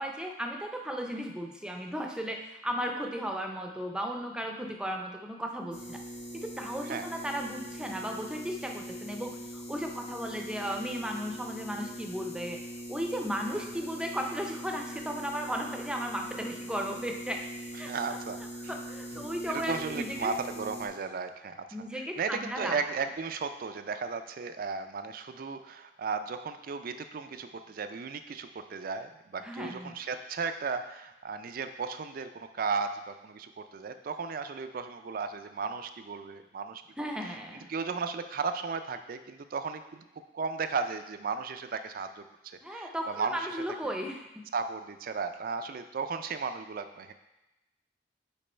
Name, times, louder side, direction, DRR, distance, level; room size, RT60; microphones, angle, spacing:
voice 1, 0.0-6.0 6.3-12.6 12.9-17.4 17.7-17.9 18.7-20.3 21.7-22.8 29.4-30.0 37.0-37.7 42.6-44.4, equal, 5° right, 2 dB, 0.5 m, -35 dB
sound 1, 5.7-20.9, right 1 dB, 70° left, 1.1 m, -42 dB
voice 2, 17.9-18.8 19.1-21.7 21.9-37.1 37.7-40.0 40.3-42.2 42.7-43.6 43.8-44.0 44.5-47.1, right 5 dB, 50° right, 9 dB, 0.4 m, -35 dB
5.3 x 4.8 x 4.3 m, 0.97 s
head